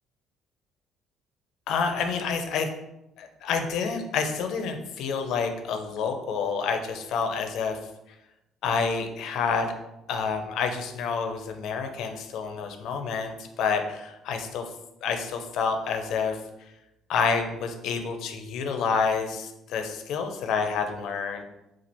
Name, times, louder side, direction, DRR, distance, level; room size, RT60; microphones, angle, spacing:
voice 1, 1.7-2.7 3.2-7.8 8.6-9.7 10.1-14.6 15.0-16.7 17.1-21.4, left 5 dB, 70° left, 5 dB, 0.6 m, -28 dB
4.3 x 2.4 x 4.3 m, 0.91 s
cardioid pair, 110°, 0 cm